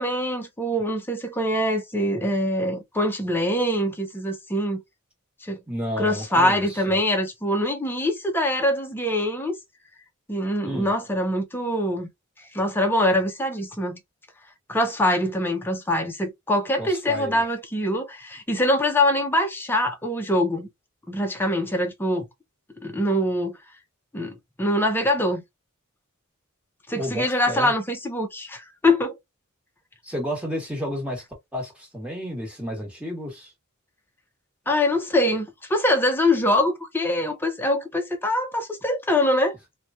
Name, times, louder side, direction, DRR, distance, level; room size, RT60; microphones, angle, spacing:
voice 1, 0.0-4.8 5.4-5.6 6.0-9.5 10.3-12.1 12.5-14.0 14.7-20.7 21.1-22.3 22.8-23.6 24.1-25.4 26.9-29.2 34.7-39.5, left 1 dB, 10° left, 0.6 m, -24 dB
voice 2, 5.7-7.0 10.6-10.9 16.8-17.4 26.9-27.7 30.0-31.2 31.5-33.5, equal, 5° right, 1.1 m, -31 dB
3.0 x 2.2 x 2.5 m
head